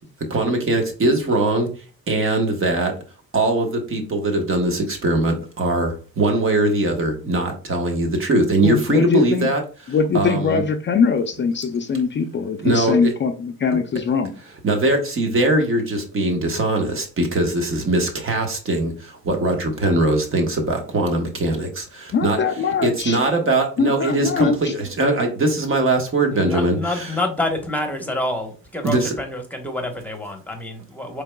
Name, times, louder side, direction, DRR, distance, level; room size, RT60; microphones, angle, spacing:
voice 1, 0.3-1.7 2.1-2.9 3.3-9.6 10.1-10.6 12.6-13.1 14.6-22.4 22.8-27.2 28.8-29.1, right 2 dB, 45° right, 1.3 m, -21 dB
voice 2, 8.6-9.5 9.9-14.3 22.1-23.2 23.8-24.7, left 5 dB, 40° left, 0.5 m, -21 dB
voice 3, 26.3-31.2, left 1 dB, 5° left, 1.1 m, -27 dB
4.6 x 3.4 x 2.2 m
cardioid pair, 90°, 30 cm